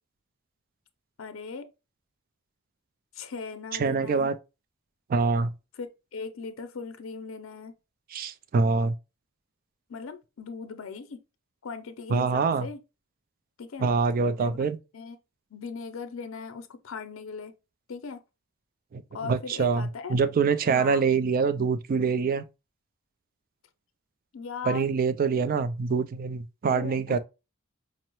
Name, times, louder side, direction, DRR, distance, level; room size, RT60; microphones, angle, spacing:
voice 1, 1.2-1.7 3.1-4.3 5.8-7.7 9.9-11.2 11.6-12.8 13.6-13.9 14.4-14.6 14.9-15.2 15.5-17.5 17.9-18.2 19.1-20.2 20.7-21.0 24.3-24.9 26.7-27.2, left 5 dB, 70° left, 0.5 m, -38 dB
voice 2, 3.8-4.4 5.1-5.5 8.1-8.9 12.1-12.7 13.8-14.8 18.9-22.4 24.7-27.2, right 5 dB, 45° right, 0.3 m, -25 dB
5.3 x 2.0 x 2.9 m
head